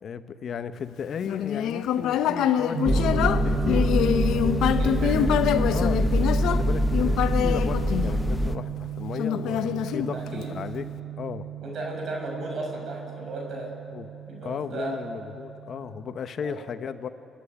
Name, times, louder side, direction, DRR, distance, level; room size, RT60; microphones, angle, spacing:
voice 1, 0.0-4.0 5.7-10.9 11.2-11.5 13.9-14.1 14.4-17.1, left 7 dB, 60° left, 11 dB, 0.9 m, -35 dB
Human voice, 1.2-8.6 9.2-10.6, left 9 dB, 85° left, 0.7 m, -25 dB
sound 1, 2.7-16.2, right 13 dB, 75° right, 0.5 m, -35 dB
sound 2, 2.8-8.6, equal, 10° left, 0.7 m, -24 dB
voice 2, 4.6-5.3 8.4-8.6 10.1-10.5 11.6-13.7 14.3-15.0 16.4-16.6, right 2 dB, 60° right, 0 dB, 6.0 m, -35 dB
28.0 x 10.5 x 10.0 m, 2.8 s
cardioid pair, 90°, 0 cm